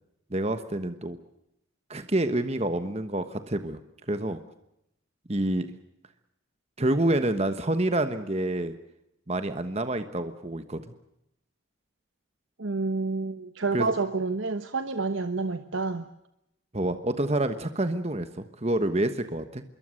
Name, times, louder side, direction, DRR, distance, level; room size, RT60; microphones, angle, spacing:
voice 1, 0.3-1.2 1.9-3.8 4.1-4.4 5.3-5.7 6.8-8.8 9.3-10.9 13.7-13.9 16.7-19.6, right 1 dB, 30° right, 9 dB, 1.3 m, -27 dB
voice 2, 12.6-16.1, right 3 dB, 85° right, 9 dB, 1.2 m, -29 dB
25.5 x 23.0 x 6.5 m, 0.82 s
head